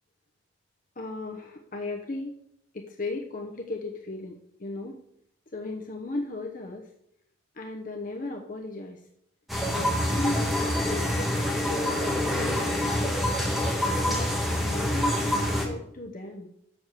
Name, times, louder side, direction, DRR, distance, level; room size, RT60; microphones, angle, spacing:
voice 1, 1.0-2.3 2.7-5.0 5.5-6.9 7.6-9.0 9.6-11.3 11.7-13.4 14.0-16.5, left 2 dB, 45° left, 2 dB, 0.9 m, -36 dB
sound 1, 9.5-15.7, left 1 dB, ahead, 1.5 m, -26 dB
7.1 x 6.9 x 6.4 m, 0.73 s
head